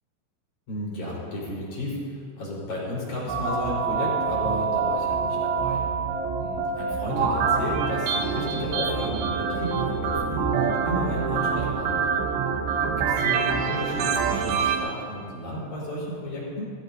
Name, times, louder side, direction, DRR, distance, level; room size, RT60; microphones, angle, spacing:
voice 1, 0.7-2.0 2.4-5.8 6.4-12.1 13.0-16.7, left 1 dB, 40° left, -7 dB, 5.3 m, -33 dB
sound 1, 3.3-14.8, right 5 dB, 75° right, 2.9 m, -26 dB
22.0 x 15.5 x 2.8 m, 2.2 s
omnidirectional pair, 5.6 m